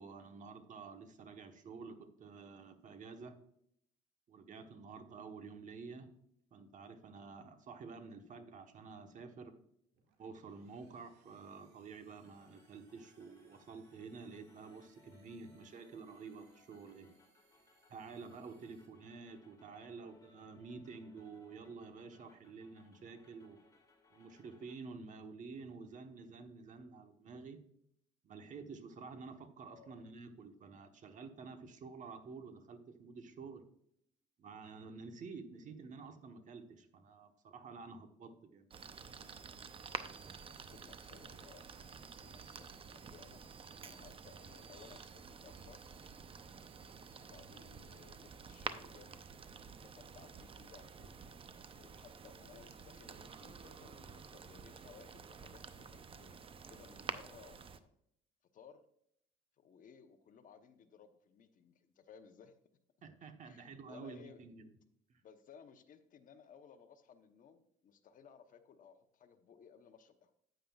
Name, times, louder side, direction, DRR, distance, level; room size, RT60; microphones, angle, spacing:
voice 1, 0.0-3.4 4.3-6.1 6.5-9.6 10.2-17.2 17.9-23.6 24.1-27.6 28.2-33.7 34.4-38.7 63.0-64.7 65.1-65.2, right 4 dB, 50° right, 7 dB, 1.2 m, -50 dB
voice 2, 8.2-8.5 19.7-20.1 29.6-30.0 35.6-35.8 40.6-43.4 43.8-45.8 47.1-49.3 49.8-51.2 51.7-57.9 58.5-58.8 59.6-62.6 63.4-64.4 65.2-70.3, left 7 dB, 50° left, 8 dB, 0.9 m, -60 dB
sound 1, 9.9-19.6, right 6 dB, 80° right, 1.8 m, -75 dB
sound 2, 11.9-24.8, left 4 dB, 20° left, 2.2 m, -69 dB
sound 3, 38.7-57.8, right 6 dB, 35° right, 0.7 m, -50 dB
9.2 x 9.2 x 2.4 m, 0.71 s
cardioid pair, 110°, 17 cm